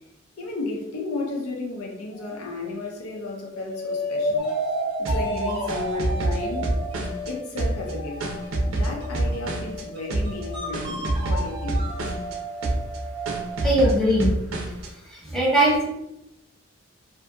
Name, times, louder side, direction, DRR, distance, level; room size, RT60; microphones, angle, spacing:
voice 1, 0.4-4.5 5.0-6.7 7.2-8.2 8.7-11.8, left 2 dB, 90° left, 0 dB, 0.6 m, -33 dB
sound 1, 2.1-2.7 3.1-7.3 7.8-9.1 10.4-10.6, left 1 dB, 45° left, 0.3 m, -31 dB
sound 2, 4.4-13.8, right 2 dB, 25° right, 0.5 m, -35 dB
sound 3, 5.1-7.3 7.6-9.8 10.1-10.5 10.7-12.4 12.6-13.0 13.3-14.9, right 1 dB, 75° right, 0.5 m, -26 dB
voice 2, 13.6-14.3 15.0-15.9, right 1 dB, ahead, -7 dB, 0.8 m, -20 dB
2.7 x 2.5 x 2.3 m, 0.87 s
head